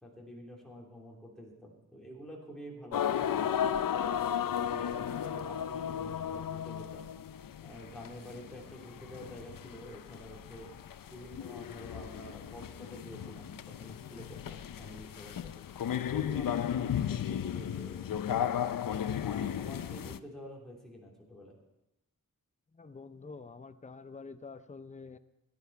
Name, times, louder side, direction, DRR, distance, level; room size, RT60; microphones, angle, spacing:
voice 1, 0.0-3.6 4.1-7.1 7.6-10.7 11.1-15.6 16.1-18.7 19.2-21.6, equal, ahead, -3 dB, 3.3 m, -48 dB
sound 1, 2.9-20.2, left 9 dB, 70° left, 0.6 m, -35 dB
voice 2, 22.7-25.2, left 4 dB, 20° left, 11 dB, 0.6 m, -47 dB
17.0 x 10.0 x 4.7 m, 0.91 s
wide cardioid pair, 115°, 34 cm